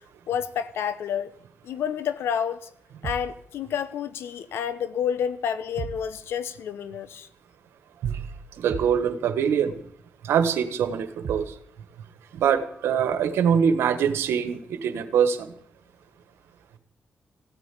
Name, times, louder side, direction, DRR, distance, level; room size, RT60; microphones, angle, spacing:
voice 1, 0.3-1.3 1.6-2.7 3.0-7.3, left 8 dB, 85° left, 1.1 m, -29 dB
sound 1, 3.0-3.4 5.8-6.1 8.7-9.1 11.2-11.6, right 6 dB, 70° right, 1.9 m, -35 dB
voice 2, 8.6-9.7 10.2-11.5 12.3-15.5, right 7 dB, 90° right, 1.5 m, -23 dB
16.0 x 9.3 x 8.4 m
cardioid pair, 60°, 4 cm